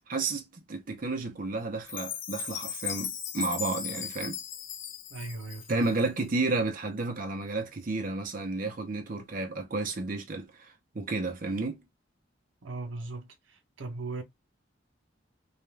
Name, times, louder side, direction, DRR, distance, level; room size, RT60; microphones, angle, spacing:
voice 1, 0.1-4.4 5.7-11.8, right 3 dB, 45° right, 0.6 m, -32 dB
Chime, 1.9-6.1, left 7 dB, 75° left, 0.5 m, -37 dB
voice 2, 5.1-5.9 12.6-14.2, right 3 dB, 90° right, 0.7 m, -38 dB
2.4 x 2.2 x 3.2 m
head